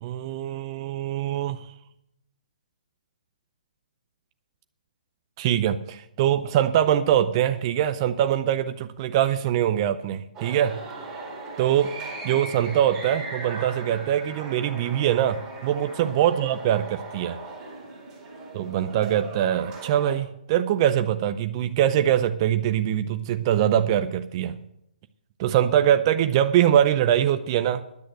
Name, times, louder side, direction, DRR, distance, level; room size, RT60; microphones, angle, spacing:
voice 1, 0.0-1.7 5.4-10.8 11.6-11.9 12.2-17.4 18.5-24.6 25.4-27.8, right 10 dB, 35° right, 10 dB, 0.6 m, -23 dB
sound 1, 10.3-20.2, right 3 dB, 15° right, 4.0 m, -38 dB
10.5 x 8.6 x 7.9 m, 0.78 s
hypercardioid pair, 140°, 5 cm